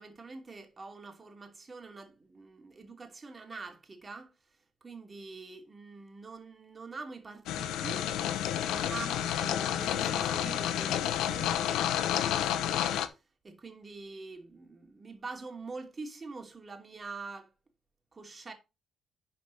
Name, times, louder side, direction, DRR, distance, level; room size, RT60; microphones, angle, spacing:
voice 1, 0.0-4.4 4.8-8.0 8.7-11.6 12.0-17.5 18.1-18.5, right 3 dB, 30° right, 2.8 m, -45 dB
sound 1, 7.5-13.1, left 10 dB, 90° left, 0.9 m, -30 dB
11.0 x 5.1 x 4.1 m
cardioid pair, 90°, 0 cm